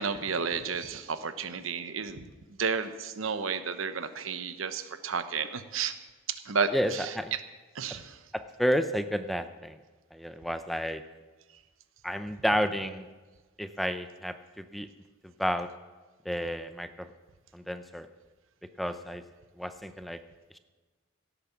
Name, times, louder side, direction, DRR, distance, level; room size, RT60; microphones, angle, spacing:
voice 1, 0.0-2.3 2.6-6.0 6.4-7.4 7.7-8.2, right 5 dB, 75° right, 11 dB, 0.9 m, -32 dB
voice 2, 6.7-7.3 8.3-9.8 10.1-11.0 12.0-13.1 13.6-14.9 15.2-15.7 16.2-17.1 17.5-18.1 18.8-19.2 19.6-20.2, equal, ahead, 10 dB, 0.5 m, -31 dB
16.5 x 8.5 x 7.2 m, 1.3 s
head